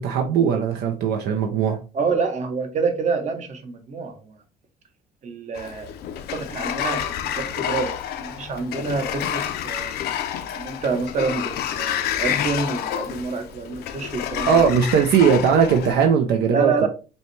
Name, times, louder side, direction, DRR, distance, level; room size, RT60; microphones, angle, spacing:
voice 1, 0.0-1.8 14.5-16.9, right 7 dB, 70° right, 0.6 m, -19 dB
voice 2, 1.9-4.2 5.2-5.9 6.5-7.9 8.2-9.9 10.6-14.6 16.5-16.9, right 4 dB, 45° right, 0.9 m, -27 dB
Sliding door, 5.5-16.1, left 10 dB, 70° left, 0.5 m, -29 dB
5.3 x 2.2 x 3.1 m
cardioid pair, 110°, 17 cm